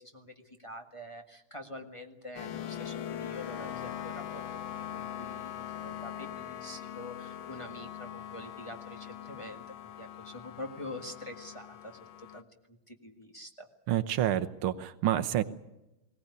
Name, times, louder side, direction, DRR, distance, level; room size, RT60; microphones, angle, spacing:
voice 1, 0.0-13.7, left 1 dB, 15° left, 3 dB, 1.4 m, -46 dB
sound 1, 2.4-12.4, left 10 dB, 70° left, 1.7 m, -41 dB
voice 2, 13.9-15.4, right 12 dB, 85° right, 12 dB, 1.9 m, -28 dB
21.0 x 18.0 x 9.7 m, 0.96 s
omnidirectional pair, 2.3 m